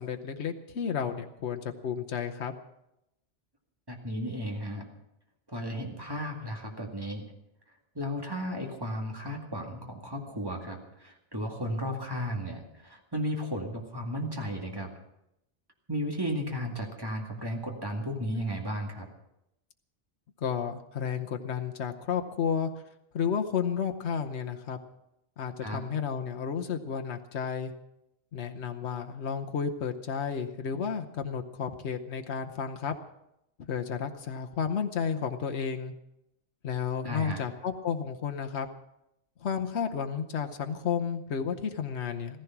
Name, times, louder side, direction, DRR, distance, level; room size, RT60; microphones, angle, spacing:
voice 1, 0.0-2.5 20.4-22.7 23.1-24.8 25.4-27.7 28.3-32.9 33.7-35.9 36.6-38.7 39.4-42.4, left 7 dB, 80° left, 5 dB, 1.2 m, -32 dB
voice 2, 3.9-4.8 5.5-7.2 7.9-14.9 15.9-19.1 25.6-25.8 37.0-37.4, equal, 20° right, 1 dB, 2.3 m, -34 dB
15.0 x 15.0 x 6.0 m, 0.83 s
omnidirectional pair, 1.1 m